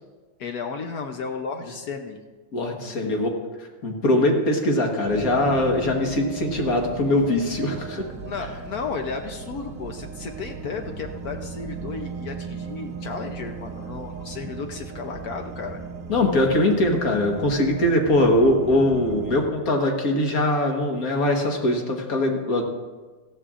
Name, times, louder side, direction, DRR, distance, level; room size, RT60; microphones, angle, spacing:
voice 1, 0.4-2.2 2.8-3.2 8.2-15.8, left 5 dB, 65° left, 5 dB, 0.9 m, -34 dB
voice 2, 2.5-3.3 3.8-8.0 16.1-22.6, left 1 dB, 45° left, 2 dB, 1.6 m, -22 dB
sound 1, 5.1-19.5, right 5 dB, 55° right, 0.9 m, -37 dB
18.0 x 13.5 x 2.5 m, 1.3 s
omnidirectional pair, 2.4 m